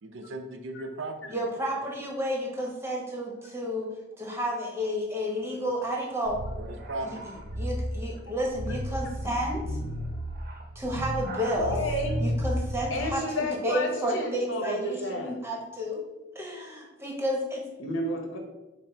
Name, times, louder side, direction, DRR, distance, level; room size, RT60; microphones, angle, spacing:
voice 1, 0.0-1.9 5.4-5.6 6.5-7.3, right 2 dB, 85° right, 5 dB, 0.6 m, -38 dB
voice 2, 1.3-3.9 4.2-6.4 7.0-7.2 7.6-9.6 10.7-11.8 12.2-16.0 16.3-17.6, equal, 15° right, -1 dB, 0.9 m, -31 dB
sound 1, 6.3-13.1, equal, 50° right, 0.7 m, -33 dB
voice 3, 11.6-12.2 12.9-15.3 17.8-18.4, left 1 dB, 85° left, 2 dB, 0.9 m, -31 dB
5.8 x 2.1 x 4.4 m, 1.1 s
head